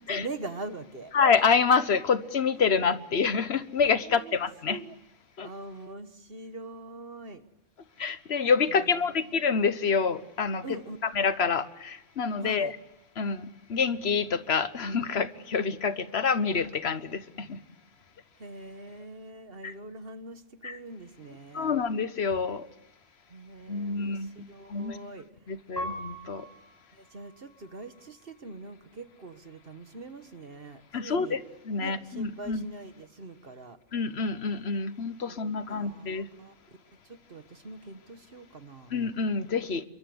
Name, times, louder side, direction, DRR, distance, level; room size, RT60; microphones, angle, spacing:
voice 1, 0.1-1.1 4.0-4.4 4.7-4.9 5.4-7.4 10.6-11.0 12.4-12.7 18.4-21.7 23.3-25.3 26.9-31.4 31.8-33.8 35.3-36.5 37.0-38.9, right 2 dB, 50° right, 1.5 m, -43 dB
voice 2, 1.1-4.8 5.4-5.5 8.0-12.8 13.2-17.6 19.6-19.7 20.6-20.8 21.5-22.7 23.7-24.4 24.7-25.0 25.5-26.5 30.9-32.7 33.9-36.3 38.9-39.8, left 5 dB, 55° left, 1.3 m, -27 dB
Piano, 25.8-28.5 29.1-29.8, equal, 30° right, 7.8 m, -43 dB
27.0 x 23.5 x 7.9 m
omnidirectional pair, 1.3 m